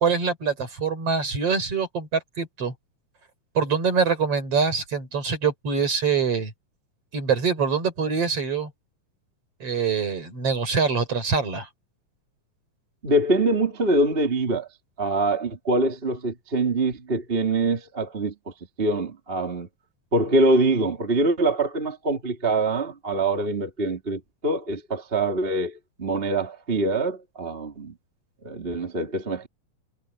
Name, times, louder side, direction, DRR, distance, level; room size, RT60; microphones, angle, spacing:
voice 1, 0.0-2.7 3.6-6.5 7.1-8.7 9.6-11.7, right 5 dB, 45° right, 5.4 m, -24 dB
voice 2, 13.0-14.7 15.0-18.3 18.8-19.7 20.1-27.9 28.4-29.5, right 2 dB, 20° right, 2.5 m, -24 dB
omnidirectional pair, 3.8 m